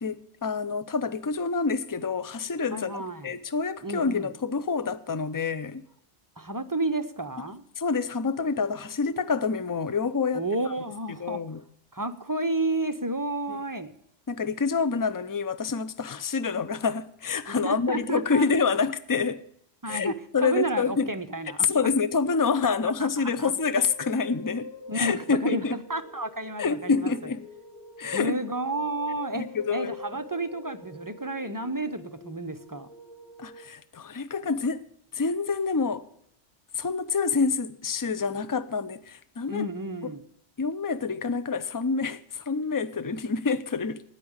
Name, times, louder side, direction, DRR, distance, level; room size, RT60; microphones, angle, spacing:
voice 1, 0.0-5.8 7.8-10.5 11.2-11.6 13.5-13.6 14.3-19.4 19.9-21.1 21.6-25.8 26.6-27.4 28.0-28.4 29.3-30.0 33.4-34.9 35.1-36.1 36.7-39.7 40.0-40.1 40.6-44.0, left 5 dB, 25° left, 0.4 m, -27 dB
voice 2, 2.7-3.3 3.8-4.3 6.4-7.6 10.3-11.4 11.9-13.9 17.5-18.5 19.8-20.1 20.4-21.9 22.8-23.5 24.9-27.1 28.1-32.9 39.5-40.2, right 2 dB, 20° right, 0.6 m, -31 dB
sound 1, 23.4-33.7, left 3 dB, 80° left, 1.6 m, -46 dB
9.8 x 8.6 x 8.7 m
omnidirectional pair, 1.1 m